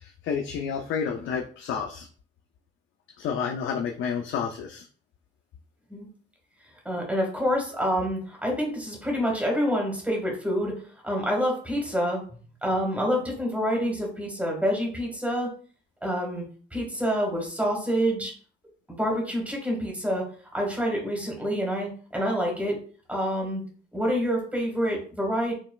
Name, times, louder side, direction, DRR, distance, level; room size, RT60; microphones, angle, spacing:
voice 1, 0.0-2.1 3.2-4.8, left 6 dB, 75° left, 2 dB, 0.6 m, -30 dB
voice 2, 6.9-10.7 11.0-12.2 12.6-15.5 16.0-16.4 16.7-18.3 19.0-20.2 20.5-22.8 23.1-23.6 23.9-25.6, equal, 5° right, 0 dB, 1.9 m, -27 dB
5.3 x 3.0 x 2.4 m, 0.43 s
cardioid pair, 90°, 20 cm